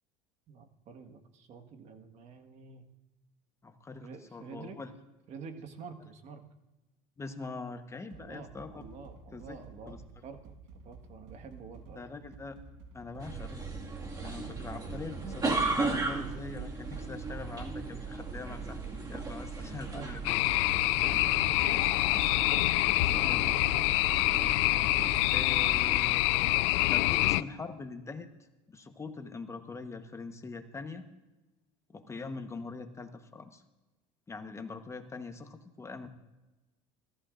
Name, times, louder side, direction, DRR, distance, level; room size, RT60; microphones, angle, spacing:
voice 1, 0.5-2.9 4.0-4.8 5.3-6.4 8.1-10.0 10.2-12.1 14.3-14.5 18.0-18.1 19.9-20.1 21.0-22.2 22.8-23.7, right 5 dB, 50° right, 7 dB, 1.6 m, -48 dB
voice 2, 3.6-4.9 7.2-8.8 9.3-9.6 9.9-10.0 11.9-12.6 12.9-13.6 14.2-20.3 22.9-23.5 25.3-26.5 26.9-28.3 28.7-31.1 31.9-33.6 34.3-36.1, left 3 dB, 20° left, 7 dB, 1.1 m, -43 dB
sound 1, 8.1-23.0, right 4 dB, 80° right, 1.3 m, -52 dB
sound 2, 13.2-26.0, right 3 dB, 25° right, 2.0 m, -37 dB
sound 3, 20.2-27.4, left 20 dB, 85° left, 0.4 m, -26 dB
23.0 x 14.0 x 2.6 m, 1.1 s
supercardioid pair, 110°, 15 cm